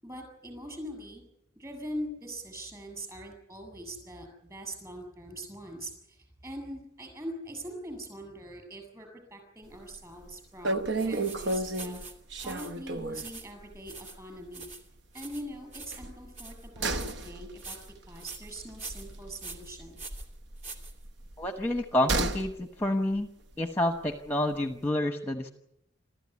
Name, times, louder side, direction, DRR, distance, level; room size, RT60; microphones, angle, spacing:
voice 1, 0.0-1.2 1.6-12.0 12.4-14.7 15.1-17.8 18.1-20.0, right 1 dB, 20° right, 5 dB, 7.7 m, -42 dB
sound 1, 9.7-10.0 10.3-10.4 10.6-13.4 13.7-13.9 14.2-14.3 15.9-19.9 20.1-22.6 22.8-22.9, right 2 dB, 65° right, 0.9 m, -33 dB
sound 2, 11.0-21.4, right 3 dB, 40° right, 2.8 m, -46 dB
voice 2, 21.4-23.3 23.6-25.5, left 1 dB, 10° left, 6 dB, 1.0 m, -29 dB
27.5 x 14.0 x 9.6 m, 0.83 s
head